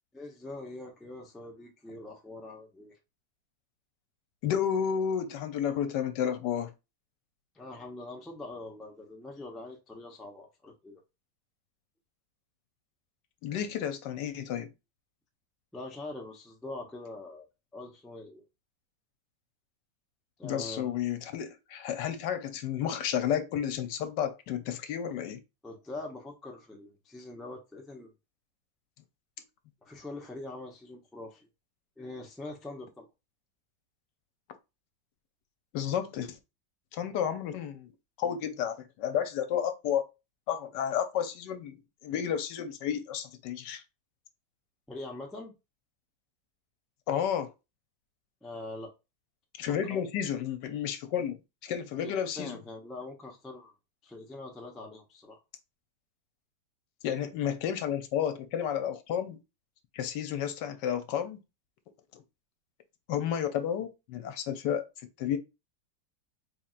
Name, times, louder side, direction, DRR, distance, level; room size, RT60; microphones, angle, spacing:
voice 1, 0.1-3.0 7.5-11.0 15.7-17.5 17.7-18.4 20.4-21.0 25.6-28.1 29.8-31.5 32.0-33.1 44.9-45.5 48.4-48.9 49.9-50.0 52.0-53.7 54.0-55.4, left 2 dB, ahead, 0.3 m, -43 dB
voice 2, 4.4-6.7 13.4-14.7 20.4-25.4 35.7-36.4 36.9-37.9 38.2-40.0 40.5-41.8 42.0-43.8 47.1-47.5 49.6-52.6 57.0-59.4 59.9-61.4 62.1-62.2 63.1-64.8 65.2-65.4, left 9 dB, 80° left, 1.3 m, -31 dB
4.4 x 3.4 x 2.4 m
omnidirectional pair, 1.9 m